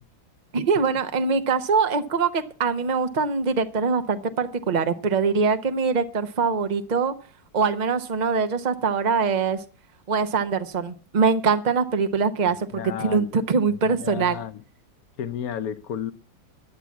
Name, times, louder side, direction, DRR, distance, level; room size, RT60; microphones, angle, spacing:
voice 1, 0.5-7.1 7.5-9.6 10.1-12.7 13.0-14.4, right 5 dB, 60° right, 0.4 m, -23 dB
voice 2, 12.7-13.3 13.7-14.6 15.2-16.1, left 9 dB, 60° left, 1.0 m, -33 dB
11.0 x 7.3 x 9.4 m
omnidirectional pair, 2.1 m